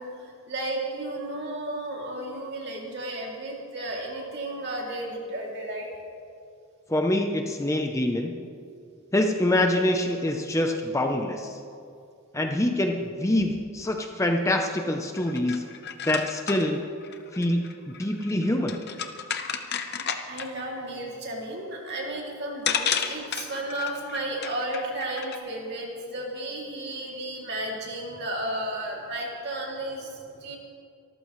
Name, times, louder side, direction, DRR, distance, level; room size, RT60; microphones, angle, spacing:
voice 1, 0.0-5.9 17.2-17.4 19.6-20.0 20.3-30.6, right 1 dB, 50° right, -2 dB, 2.7 m, -33 dB
voice 2, 6.9-8.3 9.1-11.6 12.3-15.6 16.1-16.8 17.3-18.8, left 1 dB, 15° left, 3 dB, 0.6 m, -25 dB
sound 1, 15.2-20.6 22.1-22.2 22.7-25.4, left 7 dB, 50° left, 0.8 m, -32 dB
24.0 x 14.0 x 3.2 m, 2.4 s
head